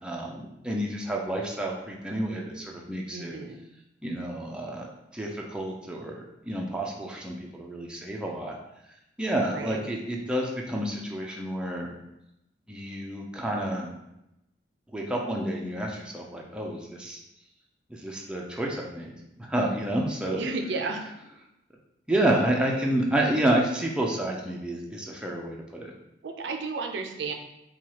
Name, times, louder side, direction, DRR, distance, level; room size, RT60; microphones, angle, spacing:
voice 1, 0.0-3.3 4.0-4.9 5.1-8.6 9.2-11.9 12.7-13.9 14.9-17.2 17.9-19.1 19.4-20.4 22.1-25.9, right 1 dB, 5° right, -1 dB, 0.4 m, -29 dB
voice 2, 3.1-3.6 9.4-9.8 20.3-21.1 26.2-27.3, right 3 dB, 65° right, 4 dB, 0.4 m, -33 dB
4.5 x 2.3 x 2.9 m, 0.87 s
head